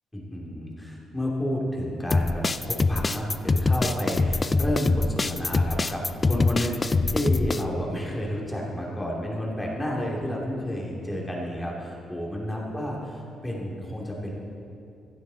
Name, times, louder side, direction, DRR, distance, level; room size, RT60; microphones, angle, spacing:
voice 1, 0.1-13.0 13.4-14.3, equal, 10° left, -3 dB, 2.8 m, -30 dB
sound 1, 2.1-7.6, left 3 dB, 25° left, 0.4 m, -24 dB
16.0 x 10.5 x 4.1 m, 2.6 s
cardioid pair, 90°, 0 cm